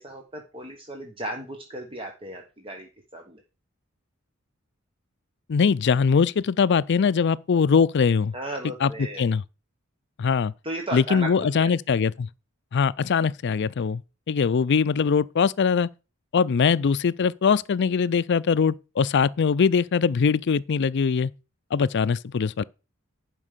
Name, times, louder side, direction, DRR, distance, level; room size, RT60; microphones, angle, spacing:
voice 1, 0.0-3.4 8.3-9.2 10.6-11.7, right 1 dB, 25° right, 1.3 m, -35 dB
voice 2, 5.5-8.3 8.8-8.9 9.2-9.4 10.2-10.5 10.9-12.3 12.7-14.0 14.3-15.9 16.3-21.3 21.7-22.6, left 6 dB, 55° left, 0.4 m, -22 dB
11.0 x 5.2 x 6.6 m
head